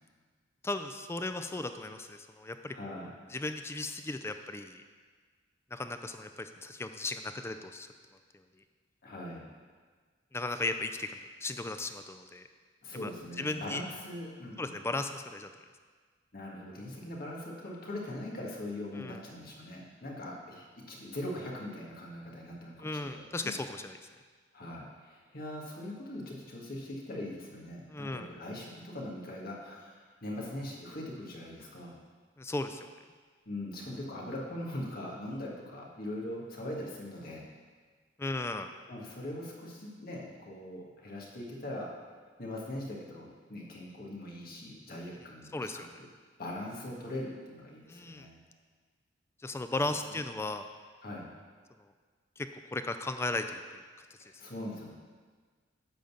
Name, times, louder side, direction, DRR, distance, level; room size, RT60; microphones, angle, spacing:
voice 1, 0.6-4.8 5.7-7.9 10.3-12.4 13.0-13.1 13.4-13.8 14.6-15.5 19.0-19.2 22.8-24.0 27.9-28.3 32.4-32.9 38.2-38.7 45.5-45.9 47.9-48.3 49.4-50.6 52.4-53.8 54.2-54.3, left 2 dB, 15° left, 8 dB, 0.3 m, -36 dB
voice 2, 2.7-3.1 9.0-9.5 12.8-14.8 16.3-23.5 24.5-31.9 33.4-37.5 38.9-41.9 42.4-46.1 46.4-48.4 50.1-50.3 51.0-51.3 54.2-55.0, left 1 dB, 50° left, -3 dB, 1.6 m, -41 dB
10.0 x 3.9 x 6.9 m, 1.5 s
head